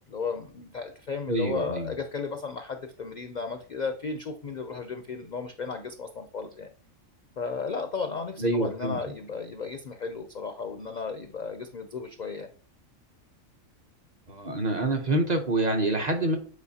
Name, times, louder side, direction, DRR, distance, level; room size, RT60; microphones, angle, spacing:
voice 1, 0.1-6.7 7.4-12.5, left 5 dB, 55° left, 6 dB, 0.5 m, -34 dB
voice 2, 1.3-1.9 8.4-9.0 14.3-16.4, right 2 dB, 40° right, 3 dB, 0.7 m, -26 dB
8.3 x 4.4 x 2.8 m, 0.43 s
omnidirectional pair, 1.4 m